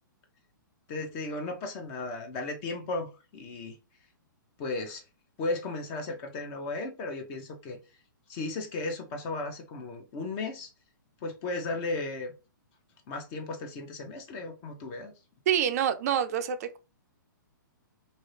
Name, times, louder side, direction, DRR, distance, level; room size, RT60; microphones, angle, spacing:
voice 1, 0.9-3.7 4.6-5.0 5.4-7.8 8.3-10.7 11.2-12.3 13.1-15.1, left 2 dB, 35° left, 0.9 m, -35 dB
voice 2, 15.5-16.8, right 9 dB, 50° right, 0.4 m, -27 dB
2.8 x 2.7 x 3.3 m
hypercardioid pair, 130°, 11 cm